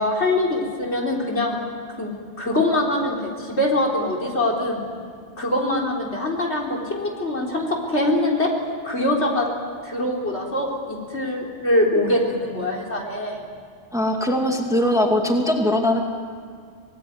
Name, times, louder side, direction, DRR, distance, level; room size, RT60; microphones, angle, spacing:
voice 1, 0.0-1.6 2.0-4.8 5.4-8.5 8.8-9.5 9.8-13.4, left 1 dB, 70° left, -1 dB, 4.2 m, -23 dB
voice 2, 13.9-16.0, left 1 dB, 5° right, 2 dB, 2.3 m, -20 dB
26.0 x 18.5 x 9.5 m, 2.1 s
omnidirectional pair, 1.2 m